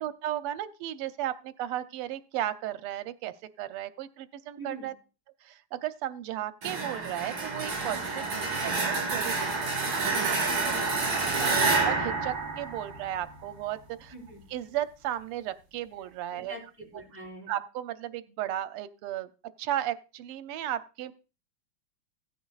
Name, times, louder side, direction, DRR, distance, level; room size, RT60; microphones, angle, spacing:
voice 1, 0.0-4.9 5.4-8.2 8.6-10.7 11.4-14.1 14.5-16.6 17.5-19.3 19.6-21.1, right 12 dB, 90° right, 12 dB, 1.6 m, -35 dB
voice 2, 4.6-4.9 7.8-8.1 10.5-10.9 11.2-11.7 14.1-14.4 16.4-17.6, right 1 dB, 5° right, -3 dB, 4.0 m, -44 dB
sound 1, 6.6-13.3, right 4 dB, 60° right, 3.8 m, -28 dB
16.0 x 9.4 x 2.4 m, 0.32 s
omnidirectional pair, 2.4 m